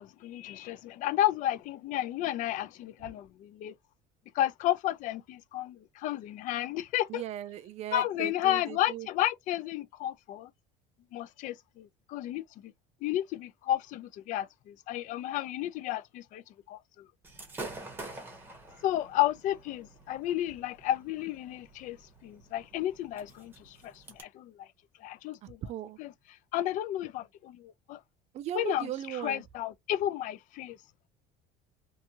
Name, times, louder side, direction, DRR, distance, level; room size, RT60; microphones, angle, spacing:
voice 1, 0.0-3.7 4.3-7.2 7.9-10.5 11.1-12.7 13.0-16.8 18.8-22.0 22.2-24.7 25.0-25.6 26.0-26.1 26.5-28.0 28.5-30.8, left 13 dB, 55° left, 0.4 m, -32 dB
voice 2, 7.1-9.1 25.4-26.0 28.3-29.4, right 11 dB, 45° right, 0.4 m, -38 dB
Gunshot gunfire / Fireworks, 17.2-24.2, right 2 dB, 15° right, 0.9 m, -47 dB
2.6 x 2.3 x 2.8 m
cardioid pair, 125°, 16 cm